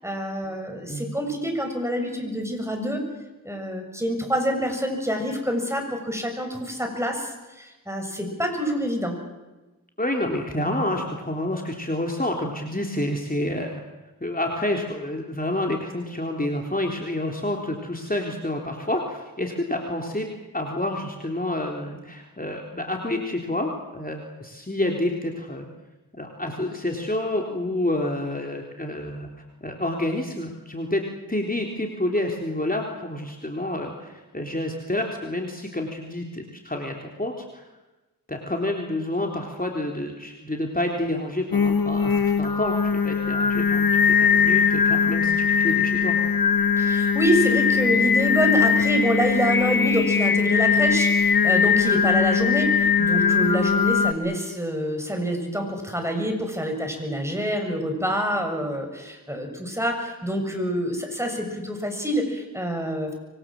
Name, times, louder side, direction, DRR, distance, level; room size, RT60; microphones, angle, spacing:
voice 1, 0.0-3.0 3.4-9.2 46.8-63.1, equal, 10° right, 3 dB, 7.1 m, -26 dB
voice 2, 10.0-13.7 14.2-20.3 20.5-25.7 26.2-29.3 29.6-37.6 38.3-46.2, left 1 dB, 25° left, 1 dB, 3.6 m, -28 dB
Singing, 41.5-54.1, left 6 dB, 80° left, 1.2 m, -20 dB
25.5 x 23.5 x 7.7 m, 1.1 s
wide cardioid pair, 55°, 35 cm